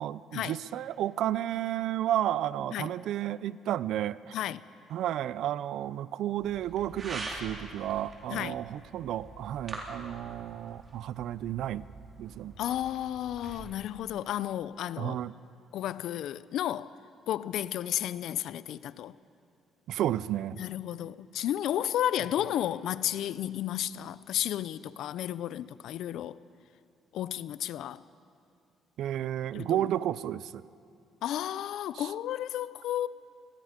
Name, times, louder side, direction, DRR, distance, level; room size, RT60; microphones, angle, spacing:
voice 1, 0.0-4.4 4.9-11.9 12.2-12.5 15.0-15.3 19.9-20.6 29.0-30.6 31.9-32.1, right 12 dB, 70° right, 0.5 m, -32 dB
sound 1, 6.4-13.6, right 2 dB, 35° right, 3.6 m, -45 dB
voice 2, 8.3-8.6 12.6-15.2 15.7-16.9 17.3-19.1 20.6-26.4 27.1-28.0 29.5-29.9 31.2-33.1, left 11 dB, 70° left, 0.5 m, -32 dB
26.0 x 20.5 x 5.1 m
cardioid pair, 130°, 0 cm